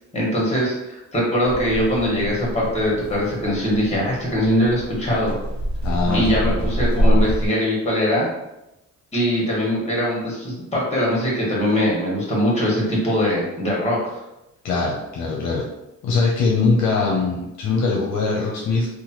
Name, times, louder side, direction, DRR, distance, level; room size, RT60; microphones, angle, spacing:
voice 1, 0.1-5.3 6.1-8.3 9.1-14.2, equal, 20° left, -4 dB, 1.4 m, -22 dB
sound 1, 1.4-7.5, equal, 65° right, 0.9 m, -25 dB
voice 2, 5.8-6.3 14.6-15.6 16.0-18.9, left 4 dB, 65° left, -2 dB, 0.6 m, -21 dB
2.9 x 2.2 x 2.9 m, 0.93 s
cardioid pair, 90°, 30 cm